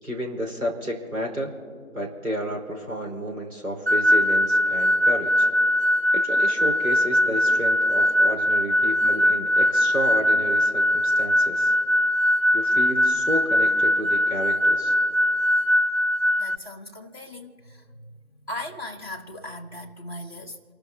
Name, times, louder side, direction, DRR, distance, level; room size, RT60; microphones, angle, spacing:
voice 1, 0.0-1.5 1.9-5.5 6.1-11.7 12.5-14.9, equal, 85° right, 4.8 m, -31 dB
sound 1, 3.9-16.5, left 1 dB, 45° right, 1.0 m, -21 dB
voice 2, 16.4-20.6, left 1 dB, 20° right, 1.4 m, -38 dB
28.5 x 13.5 x 2.9 m
figure-of-eight pair, 165°, 43 cm